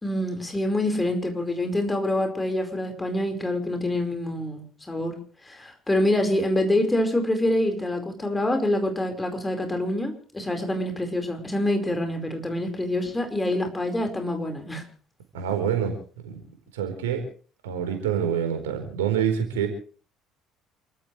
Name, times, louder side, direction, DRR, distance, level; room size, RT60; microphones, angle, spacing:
voice 1, 0.0-5.2 5.4-14.8, left 1 dB, 15° left, 4 dB, 4.9 m, -26 dB
voice 2, 15.3-16.0 16.2-16.4 16.7-17.2 17.6-19.7, right 8 dB, 75° right, 5 dB, 4.3 m, -26 dB
28.5 x 14.5 x 3.3 m, 0.41 s
figure-of-eight pair, 55°, 0 cm